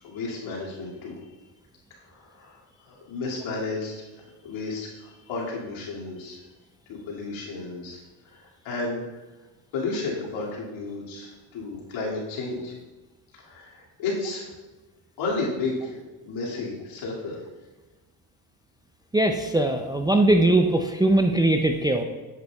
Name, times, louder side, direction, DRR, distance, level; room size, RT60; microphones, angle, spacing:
voice 1, 0.0-1.2 2.0-6.4 6.9-8.0 8.2-9.1 9.7-12.7 13.3-14.5 15.2-17.4, left 3 dB, 70° left, -4 dB, 2.5 m, -33 dB
voice 2, 19.1-22.0, right 1 dB, 10° right, 4 dB, 0.4 m, -20 dB
8.3 x 7.9 x 2.3 m, 1.2 s
supercardioid pair, 80°, 48 cm